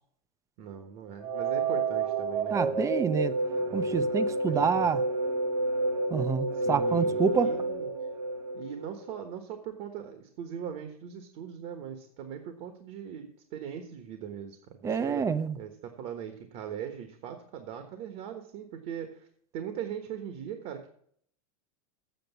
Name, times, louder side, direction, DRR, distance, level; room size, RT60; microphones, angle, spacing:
voice 1, 0.6-2.8 3.5-4.1 4.4-4.9 6.5-7.9 8.5-15.3 15.6-19.3 19.5-20.9, right 8 dB, 50° right, 1.3 m, -40 dB
sound 1, 1.2-9.2, right 2 dB, 90° right, 1.6 m, -30 dB
voice 2, 2.5-3.4 3.7-5.0 6.1-7.5 14.8-15.6, right 6 dB, 15° right, 0.5 m, -27 dB
7.8 x 6.6 x 8.1 m
supercardioid pair, 130°, 19 cm